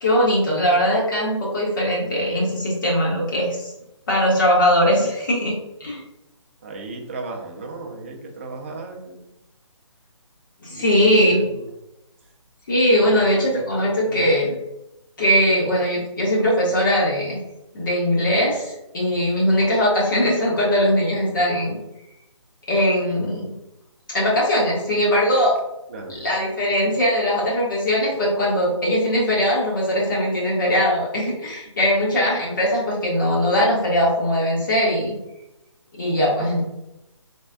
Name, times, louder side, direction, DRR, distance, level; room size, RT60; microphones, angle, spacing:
voice 1, 0.0-3.7 4.1-5.5 5.8-6.0 10.6-11.4 12.7-14.5 15.2-17.4 17.7-21.8 22.7-23.5 24.1-25.5 26.2-35.1 36.0-36.6, equal, 40° left, -5 dB, 1.4 m, -20 dB
voice 2, 6.6-9.2 10.7-11.7 13.1-13.5 14.1-14.2 19.3-19.6 25.9-26.2, right 3 dB, 25° right, 0 dB, 0.5 m, -36 dB
3.8 x 3.4 x 2.2 m, 0.89 s
hypercardioid pair, 165°, 16 cm